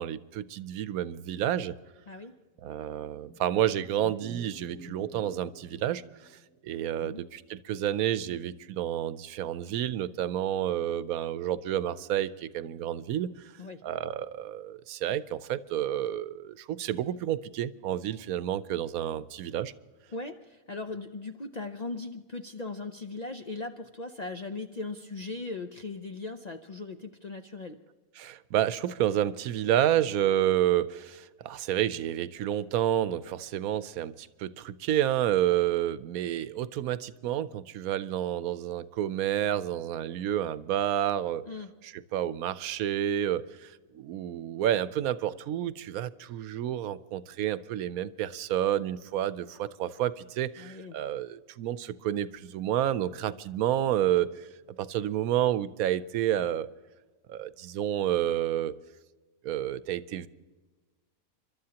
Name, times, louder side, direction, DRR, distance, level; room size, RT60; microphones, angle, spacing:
voice 1, 0.0-1.7 2.6-6.0 6.6-13.3 13.8-19.7 28.2-41.4 41.8-54.5 54.8-56.7 57.3-58.7 59.4-60.3, right 11 dB, 85° right, 15 dB, 1.1 m, -29 dB
sound 1, 3.2-6.7, right 2 dB, 10° left, 5.4 m, -49 dB
voice 2, 20.1-27.8 41.5-41.7 50.6-50.9, left 3 dB, 45° left, 5 dB, 0.5 m, -38 dB
30.0 x 12.5 x 2.9 m, 1.2 s
omnidirectional pair, 1.5 m